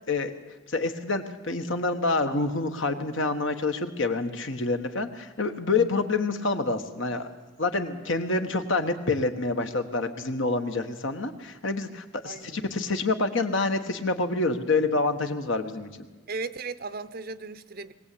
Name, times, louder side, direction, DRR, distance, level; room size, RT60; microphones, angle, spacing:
voice 1, 0.7-7.3 7.6-16.1, left 3 dB, 65° left, 7 dB, 1.4 m, -27 dB
voice 2, 12.2-12.7 16.3-17.9, right 4 dB, 45° right, 14 dB, 0.7 m, -36 dB
21.5 x 17.5 x 8.5 m, 1.2 s
head